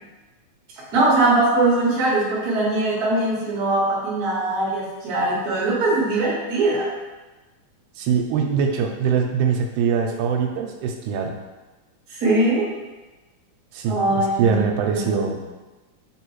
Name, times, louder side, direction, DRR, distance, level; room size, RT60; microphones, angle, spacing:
voice 1, 0.9-6.9 12.1-12.7 13.9-15.2, right 2 dB, 70° right, -5 dB, 0.9 m, -21 dB
voice 2, 8.0-11.4 13.7-15.4, right 6 dB, 85° right, 3 dB, 2.0 m, -22 dB
4.4 x 3.4 x 3.0 m, 1.2 s
omnidirectional pair, 3.4 m